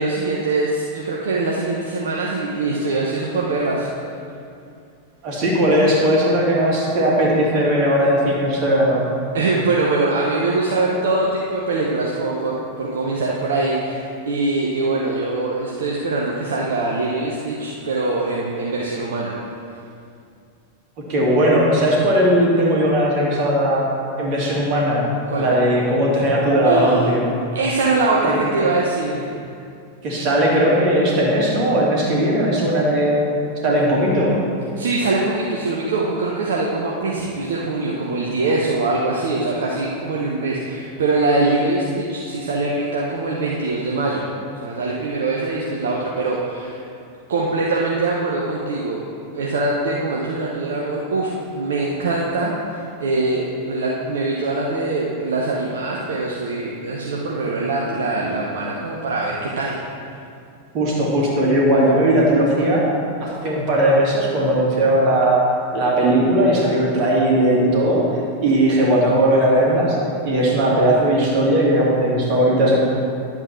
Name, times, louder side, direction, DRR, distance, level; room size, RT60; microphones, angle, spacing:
voice 1, 0.0-3.9 9.3-19.3 25.3-25.5 26.6-27.1 27.5-29.4 34.7-44.3 44.5-46.8 47.3-49.0 49.3-59.8, right 2 dB, 60° right, -3 dB, 1.0 m, -23 dB
voice 2, 5.2-9.0 21.1-23.9 24.2-25.0 25.4-27.2 28.2-28.4 30.0-33.2 33.6-34.3 60.7-62.9 63.2-65.5 65.7-68.1 68.4-70.0 70.2-72.8, right 1 dB, 40° right, -4 dB, 2.6 m, -18 dB
11.0 x 8.0 x 4.5 m, 2.4 s
figure-of-eight pair, 90°, 0 cm